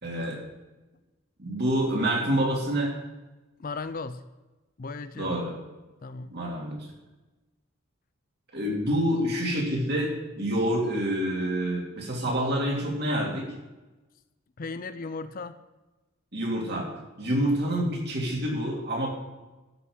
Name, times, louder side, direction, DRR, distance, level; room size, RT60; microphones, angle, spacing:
voice 1, 0.0-0.4 1.4-2.9 5.1-5.5 6.3-6.8 8.5-13.4 16.3-16.9 17.2-19.1, right 1 dB, 50° right, -2 dB, 3.0 m, -27 dB
voice 2, 3.6-4.2 4.8-5.3 6.0-6.4 14.6-15.6, left 4 dB, 40° left, 11 dB, 0.5 m, -36 dB
12.0 x 5.9 x 8.1 m, 1.1 s
head